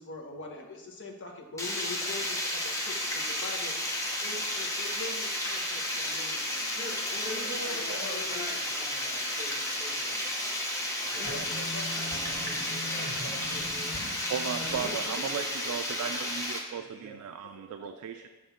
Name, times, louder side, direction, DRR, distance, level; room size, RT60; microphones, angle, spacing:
voice 1, 0.0-6.7 7.1-8.5 10.5-11.4 11.7-12.0 12.9-13.6 14.8-15.3 16.7-16.8 17.2-18.0, left 2 dB, 55° left, 0 dB, 1.0 m, -43 dB
Water, 1.6-16.6, left 1 dB, 15° left, 0.9 m, -32 dB
voice 2, 6.6-10.3 11.0-14.0 14.6-14.9 15.1-16.3 16.7-17.3, right 1 dB, 30° right, -6 dB, 1.8 m, -45 dB
sound 1, 11.2-14.9, left 1 dB, 80° left, 2.1 m, -40 dB
voice 3, 14.3-18.3, right 8 dB, 85° right, 7 dB, 0.3 m, -36 dB
7.1 x 3.3 x 5.7 m, 1.1 s
head